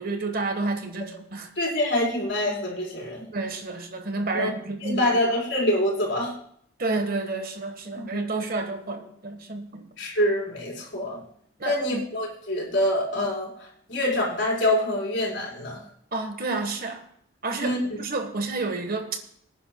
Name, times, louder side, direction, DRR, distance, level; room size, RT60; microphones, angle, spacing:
voice 1, 0.0-1.5 3.3-5.2 6.8-9.9 11.6-12.0 13.2-13.3 16.1-17.0 17.4-19.2, right 3 dB, 45° right, 6 dB, 1.4 m, -30 dB
voice 2, 1.6-3.3 4.3-4.5 4.8-6.3 7.9-8.2 10.0-11.2 11.6-13.5 13.9-15.8 17.6-18.0, left 1 dB, 65° left, -3 dB, 4.5 m, -25 dB
23.5 x 9.9 x 2.3 m, 0.66 s
head